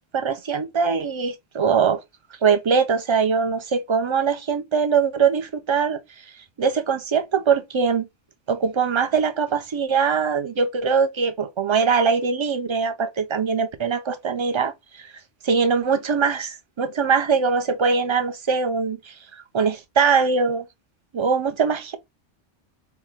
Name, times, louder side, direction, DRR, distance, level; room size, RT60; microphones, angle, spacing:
voice 1, 0.1-2.0 2.4-6.0 6.6-8.1 8.5-15.0 15.4-20.6 21.1-22.0, right 5 dB, 50° right, 0.3 m, -22 dB
4.6 x 2.1 x 3.6 m
omnidirectional pair, 1.2 m